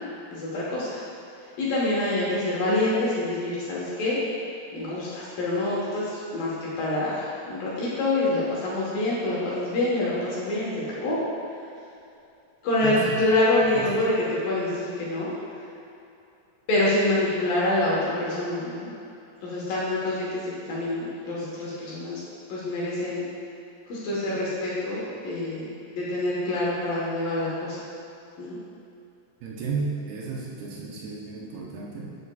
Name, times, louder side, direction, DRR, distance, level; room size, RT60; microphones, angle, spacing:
voice 1, 0.3-1.0 1.6-4.2 4.7-11.2 12.6-14.1 14.4-15.3 16.7-18.9 19.4-22.2 22.5-23.2 23.9-27.8 28.4-28.6, left 2 dB, 65° left, -7 dB, 2.6 m, -26 dB
voice 2, 12.8-13.2 13.6-14.1 29.4-32.2, right 4 dB, 75° right, -4 dB, 2.6 m, -33 dB
8.2 x 7.9 x 2.3 m, 2.7 s
omnidirectional pair, 4.8 m